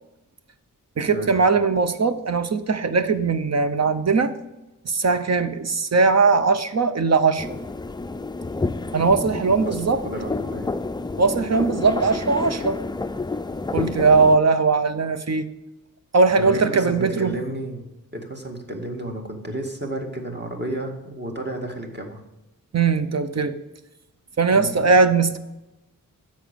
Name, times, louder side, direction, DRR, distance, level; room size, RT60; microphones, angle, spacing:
voice 1, 1.0-4.3 4.8-7.6 8.9-10.0 11.2-12.8 13.7-15.5 16.1-17.3 22.7-23.6 24.4-25.4, right 4 dB, 50° right, 10 dB, 0.8 m, -20 dB
sound 1, 7.4-14.4, left 3 dB, 15° left, 0.3 m, -29 dB
voice 2, 9.7-10.7 13.7-13.9 16.4-22.2 24.5-24.8, right 1 dB, 30° right, 2 dB, 2.0 m, -32 dB
10.0 x 7.8 x 5.2 m, 0.97 s
wide cardioid pair, 100°, 34 cm